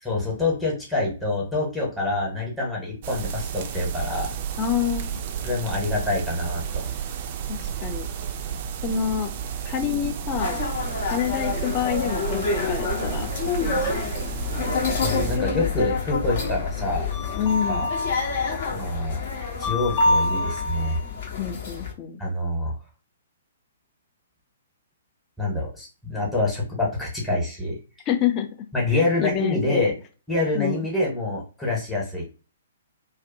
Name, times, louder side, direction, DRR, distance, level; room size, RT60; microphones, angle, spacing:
voice 1, 0.0-4.3 5.4-6.8 14.8-17.1 17.7-17.9 18.7-19.2 19.6-21.0 22.2-22.7 25.4-27.8 28.7-29.9 30.3-32.2, left 2 dB, 5° left, -4 dB, 1.0 m, -26 dB
sound 1, 3.0-15.4, right 8 dB, 40° right, 0.3 m, -32 dB
voice 2, 4.6-5.2 7.5-8.1 8.8-9.3 9.7-10.6 11.0-13.3 13.6-14.0 17.3-17.9 21.4-22.2 28.1-28.5 28.9-29.9 30.5-30.9, left 9 dB, 30° left, 6 dB, 0.5 m, -27 dB
sound 2, 10.4-21.9, left 4 dB, 50° left, 0.8 m, -27 dB
sound 3, 11.8-14.2, left 3 dB, 75° left, 1.2 m, -42 dB
2.5 x 2.1 x 2.5 m, 0.33 s
figure-of-eight pair, 120°, 0 cm